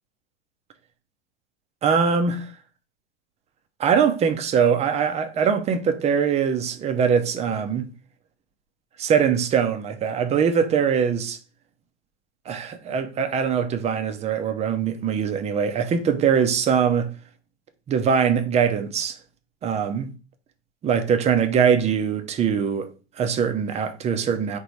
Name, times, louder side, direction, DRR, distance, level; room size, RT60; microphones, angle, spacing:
voice 1, 1.8-2.5 3.8-7.9 9.0-11.4 12.5-17.1 17.9-19.2 19.6-20.1 20.8-22.9 23.2-24.6, right 7 dB, 20° right, 0.5 m, -22 dB
3.9 x 2.6 x 4.5 m
hypercardioid pair, 120°, 35 cm